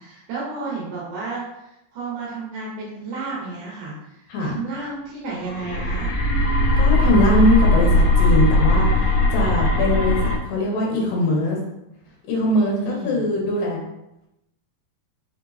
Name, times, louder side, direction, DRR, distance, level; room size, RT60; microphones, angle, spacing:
voice 1, 0.0-6.1 12.8-13.3, right 3 dB, 70° right, -6 dB, 1.9 m, -32 dB
sound 1, 5.4-10.4, left 1 dB, 90° left, 1.6 m, -18 dB
voice 2, 6.8-11.6 12.3-13.8, left 1 dB, 70° left, -2 dB, 2.6 m, -21 dB
5.5 x 3.6 x 2.5 m, 0.86 s
omnidirectional pair, 4.6 m